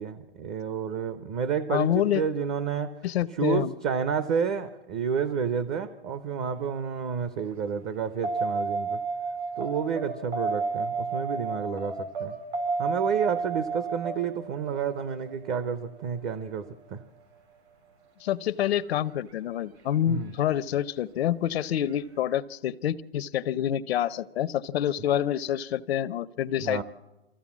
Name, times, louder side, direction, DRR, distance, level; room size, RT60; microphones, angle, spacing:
voice 1, 0.0-2.9 3.4-9.0 9.6-12.3 12.8-17.0 20.1-20.3 26.6-26.8, right 7 dB, 30° right, 13 dB, 0.7 m, -30 dB
voice 2, 1.7-2.2 3.0-3.7 18.2-26.8, left 11 dB, 70° left, 16 dB, 0.7 m, -27 dB
sound 1, 8.2-16.7 19.3-19.4, right 4 dB, 80° right, 4.6 m, -31 dB
23.5 x 15.0 x 7.3 m, 1.0 s
hypercardioid pair, 150°, 32 cm